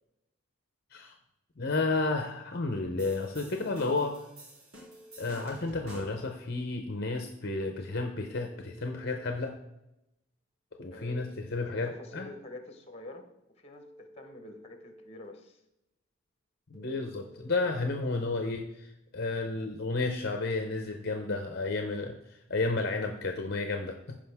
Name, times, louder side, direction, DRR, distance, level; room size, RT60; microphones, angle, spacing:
voice 1, 1.6-4.2 5.2-9.5 10.8-12.3 16.7-24.2, left 3 dB, 50° left, 4 dB, 0.8 m, -32 dB
sound 1, 3.0-6.3, equal, 80° right, 3.2 m, -50 dB
Telephone, 3.2-4.2 4.7-6.2 7.7-9.2 10.7-12.2 13.7-15.2 16.7-18.2, equal, 35° right, 2.4 m, -54 dB
voice 2, 10.9-11.2 11.5-13.2 13.6-15.6, left 1 dB, 30° left, 6 dB, 1.2 m, -47 dB
15.5 x 5.1 x 3.5 m, 0.88 s
head